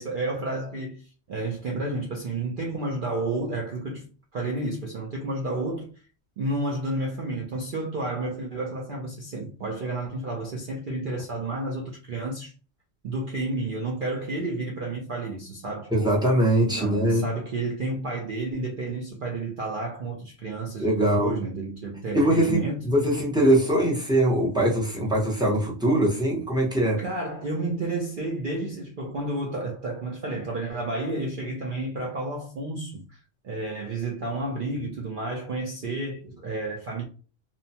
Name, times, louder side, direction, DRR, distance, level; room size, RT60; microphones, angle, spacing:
voice 1, 0.0-5.9 6.4-12.5 13.0-16.2 16.7-22.9 27.0-33.2 33.4-37.0, right 2 dB, 60° right, 0.5 m, -31 dB
voice 2, 15.9-17.3 20.8-21.4 22.1-27.0, right 1 dB, 5° right, 0.5 m, -22 dB
2.7 x 2.1 x 2.7 m
omnidirectional pair, 1.4 m